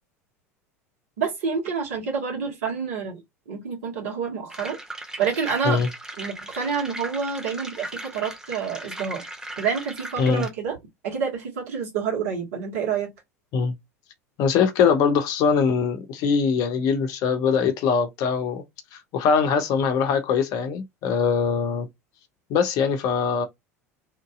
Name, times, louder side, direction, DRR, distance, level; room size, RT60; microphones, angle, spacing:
voice 1, 1.2-3.2 3.5-4.8 5.2-5.8 6.2-9.2 9.6-10.7 11.0-13.1, right 6 dB, 65° right, 1.5 m, -28 dB
sound 1, 4.5-10.5, right 1 dB, 10° right, 0.8 m, -38 dB
voice 2, 14.4-18.6 18.9-21.9 22.5-23.5, left 6 dB, 50° left, 0.7 m, -22 dB
2.9 x 2.7 x 2.3 m
figure-of-eight pair, 75°, 8 cm